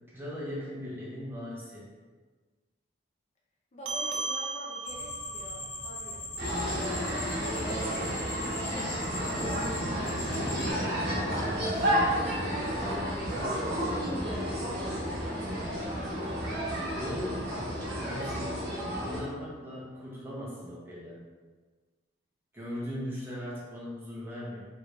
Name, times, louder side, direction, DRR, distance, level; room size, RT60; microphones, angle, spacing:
voice 1, 0.1-1.9 17.0-17.5 17.9-18.7 19.1-21.2 22.5-24.6, equal, 10° right, -7 dB, 0.7 m, -38 dB
voice 2, 3.7-6.2 6.6-9.4 9.6-14.2, left 1 dB, 40° left, -4 dB, 0.5 m, -45 dB
sound 1, 3.9-8.6, right 4 dB, 75° right, 0.4 m, -39 dB
sound 2, 4.9-10.7, left 1 dB, 65° left, 1.3 m, -40 dB
sound 3, 6.4-19.2, equal, 60° right, 1.1 m, -31 dB
3.2 x 3.0 x 2.5 m, 1.4 s
head